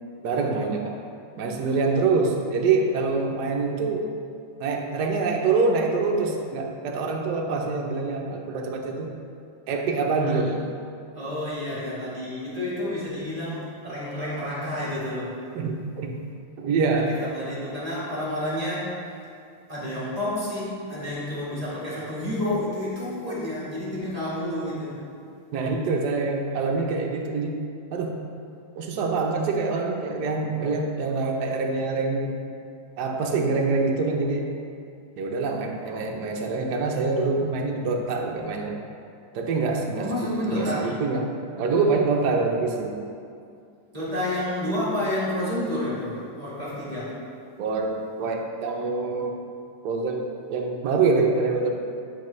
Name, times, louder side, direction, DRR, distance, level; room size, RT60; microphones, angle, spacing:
voice 1, 0.2-0.9 1.4-4.1 4.6-9.1 9.7-10.5 15.5-16.1 16.6-17.1 25.5-27.6 27.9-28.1 28.8-32.3 33.0-34.5 35.2-38.8 39.3-41.3 41.6-42.9 47.6-47.9 48.2-49.4 49.8-51.7, right 4 dB, 65° right, 1 dB, 1.1 m, -25 dB
voice 2, 11.1-15.3 17.0-18.9 19.7-25.0 39.9-40.9 43.9-47.2, left 1 dB, 20° right, -9 dB, 1.4 m, -29 dB
9.7 x 4.3 x 3.1 m, 2.4 s
omnidirectional pair, 2.2 m